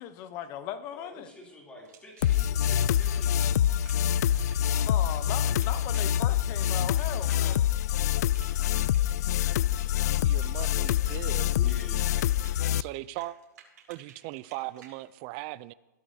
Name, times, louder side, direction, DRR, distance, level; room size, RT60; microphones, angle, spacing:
voice 1, 0.0-1.3 4.9-7.7, left 10 dB, 30° left, 0.8 m, -38 dB
voice 2, 0.9-3.4 11.5-12.1, left 2 dB, 10° left, 3.0 m, -46 dB
sound 1, 1.9-15.0, right 8 dB, 60° right, 4.8 m, -55 dB
sound 2, 2.2-12.8, left 11 dB, 60° left, 0.3 m, -26 dB
voice 3, 10.2-11.5 12.7-13.4 13.9-15.7, right 18 dB, 30° right, 0.4 m, -38 dB
22.0 x 13.5 x 2.8 m
hypercardioid pair, 155°, 10 cm